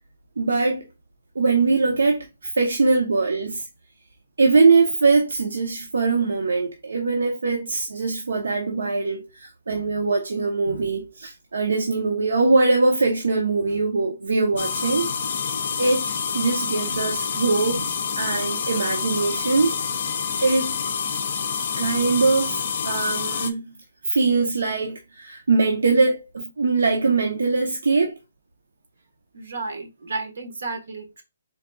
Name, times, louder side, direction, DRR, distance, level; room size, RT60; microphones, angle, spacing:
voice 1, 0.4-0.9 1.3-3.6 4.4-15.1 15.8-19.8 20.4-20.8 21.8-23.7 24.1-28.2, right 3 dB, 80° right, 0.8 m, -22 dB
sound 1, 14.6-23.5, left 6 dB, 35° left, 0.4 m, -27 dB
voice 2, 29.3-31.2, right 3 dB, 65° right, 1.3 m, -32 dB
4.1 x 3.8 x 2.3 m
hypercardioid pair, 180°, 0 cm